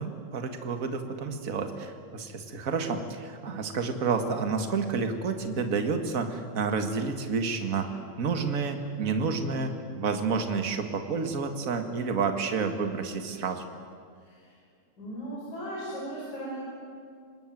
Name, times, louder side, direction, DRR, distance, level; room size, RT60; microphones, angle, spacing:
voice 1, 0.0-7.9 8.2-9.7 10.0-13.6, right 5 dB, 35° right, 6 dB, 1.7 m, -29 dB
voice 2, 14.2-14.5 15.0-16.6, right 1 dB, 70° left, -6 dB, 7.3 m, -37 dB
25.0 x 20.0 x 9.2 m, 2.2 s
omnidirectional pair, 3.5 m